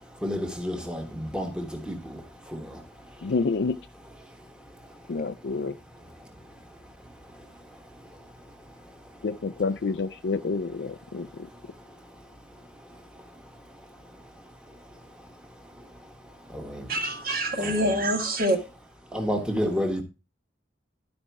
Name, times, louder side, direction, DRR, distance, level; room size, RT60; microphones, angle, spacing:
voice 1, 0.2-2.8 6.2-6.3 16.5-16.9 17.6-17.8 19.1-20.0, equal, 5° right, 1.4 m, -31 dB
voice 2, 3.2-3.8 5.1-5.7 9.2-11.3, left 4 dB, 60° left, 0.4 m, -28 dB
voice 3, 16.9-18.6, right 1 dB, 50° right, 1.7 m, -25 dB
12.0 x 5.1 x 4.7 m
head